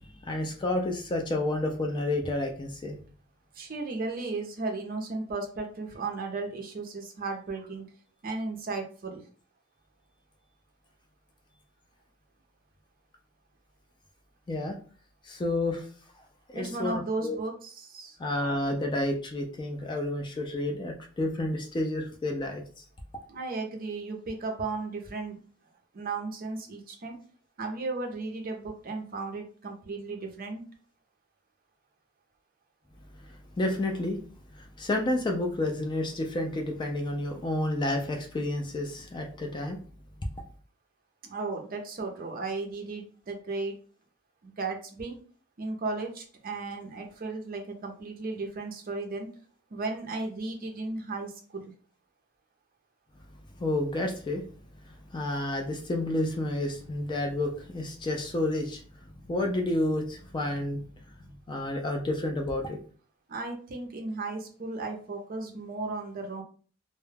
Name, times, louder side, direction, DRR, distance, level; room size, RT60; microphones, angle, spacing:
voice 1, 0.0-3.0 14.5-14.8 15.2-15.9 16.5-17.4 18.2-22.8 33.3-34.2 34.5-39.8 53.6-54.5 55.1-58.8 59.3-60.8 61.5-62.8, left 1 dB, 25° left, 3 dB, 0.3 m, -30 dB
voice 2, 3.5-7.8 8.2-9.2 16.5-18.2 23.3-25.4 25.9-27.2 27.6-30.6 41.2-43.8 44.4-45.2 45.6-49.3 49.7-51.7 63.3-66.4, right 3 dB, 45° right, 3 dB, 0.5 m, -35 dB
2.2 x 2.0 x 3.2 m, 0.42 s
head